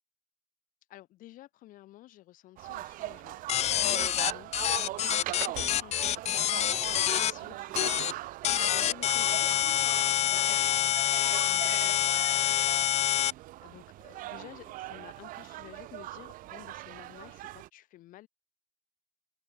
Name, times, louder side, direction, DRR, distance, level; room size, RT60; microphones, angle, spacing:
voice 1, 0.9-8.3 8.6-12.8 13.6-18.3, left 15 dB, 75° left, 6.1 m, -52 dB
sound 1, 2.6-17.7, right 17 dB, 75° right, 2.6 m, -40 dB
sound 2, 3.5-7.3 7.8-8.1 8.4-13.3, left 12 dB, 50° left, 0.4 m, -27 dB
hypercardioid pair, 60°, 14 cm